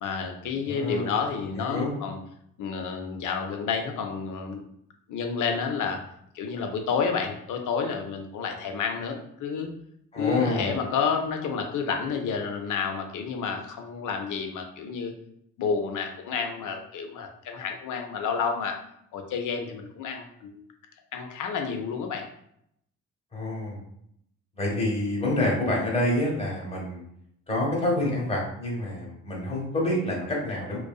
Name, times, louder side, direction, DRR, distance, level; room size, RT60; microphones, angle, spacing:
voice 1, 0.0-2.2 2.6-4.6 5.1-6.0 6.3-9.7 10.2-15.1 15.6-18.8 19.1-20.6 21.1-22.3, left 6 dB, 60° left, 4 dB, 0.6 m, -30 dB
voice 2, 0.7-1.1 1.6-1.9 10.1-10.8 23.3-23.8 24.6-27.0 27.5-30.8, left 1 dB, 20° left, -3 dB, 1.0 m, -27 dB
2.5 x 2.3 x 2.2 m, 0.73 s
supercardioid pair, 55°, 34 cm